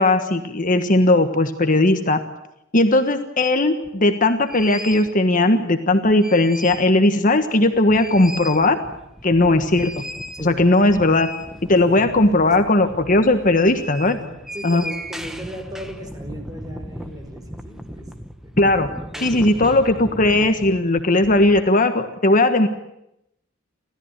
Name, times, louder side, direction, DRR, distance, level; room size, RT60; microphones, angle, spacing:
voice 1, 0.0-2.2 2.7-8.8 9.2-10.0 10.4-11.3 11.7-14.2 14.6-14.8 18.6-18.9 19.2-22.7, left 2 dB, 40° left, 7 dB, 1.5 m, -17 dB
sound 1, 3.8-3.9 4.4-5.1 5.9-7.0 7.3-7.4 7.7-21.6, equal, ahead, 1.4 m, -36 dB
voice 2, 14.2-18.1 18.6-18.8 19.1-19.5, equal, 20° right, 5 dB, 4.9 m, -37 dB
29.5 x 14.5 x 9.1 m, 0.83 s
head